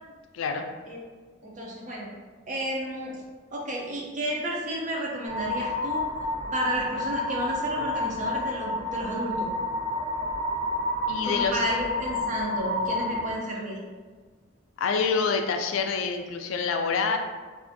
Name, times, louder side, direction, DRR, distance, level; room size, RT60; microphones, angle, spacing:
voice 1, 0.3-0.7 11.1-11.6 14.8-17.2, left 5 dB, 75° left, 5 dB, 0.3 m, -26 dB
voice 2, 1.4-2.1 2.5-3.2 3.5-6.1 6.5-9.5 11.2-13.8, right 1 dB, 40° right, -2 dB, 0.4 m, -32 dB
sound 1, 5.3-13.3, left 2 dB, 80° right, 0.9 m, -29 dB
2.5 x 2.4 x 2.6 m, 1.4 s
head